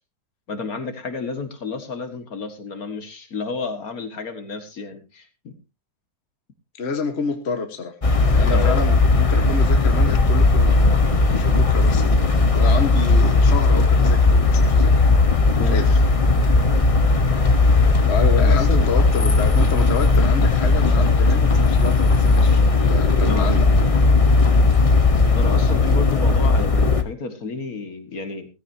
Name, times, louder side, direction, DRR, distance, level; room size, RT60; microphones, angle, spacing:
voice 1, 0.5-5.5 8.5-8.9 15.2-15.3 15.6-16.0 18.4-18.9 23.2-23.5 24.7-24.8 25.3-28.5, left 4 dB, 60° left, 7 dB, 2.2 m, -31 dB
voice 2, 6.8-10.8 11.4-14.9 15.6-16.0 18.0-22.6 22.9-23.7, left 4 dB, 40° left, 6 dB, 1.6 m, -29 dB
sound 1, 8.0-27.0, left 3 dB, 25° left, 0.9 m, -17 dB
17.0 x 15.5 x 2.8 m, 0.29 s
omnidirectional pair, 1.7 m